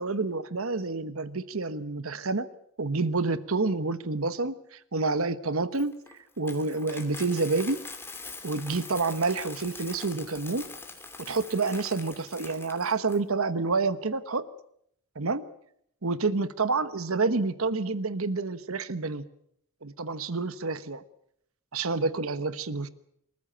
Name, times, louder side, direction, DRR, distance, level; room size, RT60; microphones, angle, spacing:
voice 1, 0.0-2.5 2.8-5.9 6.4-7.8 8.4-10.6 11.2-14.5 15.1-15.4 16.0-19.2 19.8-21.0 21.7-22.9, right 3 dB, 90° right, 14 dB, 1.2 m, -28 dB
Coin (dropping), 5.7-13.2, left 3 dB, 10° left, 2.5 m, -43 dB
26.5 x 14.0 x 9.0 m, 0.72 s
head